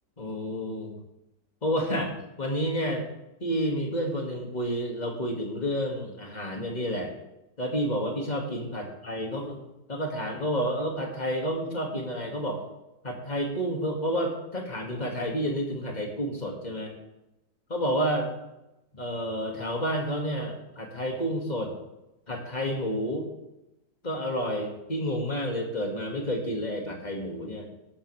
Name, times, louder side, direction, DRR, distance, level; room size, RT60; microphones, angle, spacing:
voice 1, 0.2-0.9 1.6-2.1 2.4-3.0 3.4-7.1 7.6-9.6 9.9-12.6 13.0-17.0 17.7-18.3 18.9-21.7 22.3-23.3 24.0-27.7, equal, 25° left, 0 dB, 2.3 m, -30 dB
13.5 x 13.0 x 3.5 m, 0.91 s
omnidirectional pair, 1.9 m